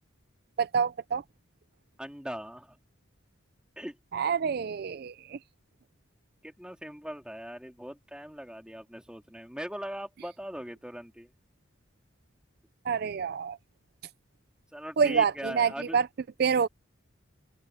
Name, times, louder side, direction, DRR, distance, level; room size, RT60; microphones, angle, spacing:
voice 1, 0.6-1.2 4.1-5.4 12.9-13.6 15.0-16.1 16.4-16.7, right 6 dB, 50° right, 0.4 m, -27 dB
voice 2, 2.0-2.8 3.8-4.0 6.4-11.3 14.7-16.0, equal, 5° right, 2.8 m, -40 dB
head